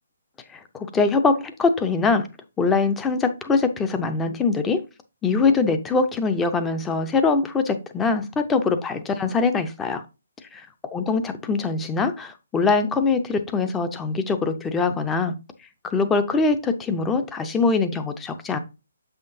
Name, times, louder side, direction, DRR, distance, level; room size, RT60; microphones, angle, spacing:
voice 1, 0.5-2.3 2.6-4.8 5.2-10.0 10.5-10.7 10.9-15.3 15.8-18.6, left 4 dB, 10° left, 0.5 m, -23 dB
7.3 x 5.7 x 2.6 m
hypercardioid pair, 160°, 0 cm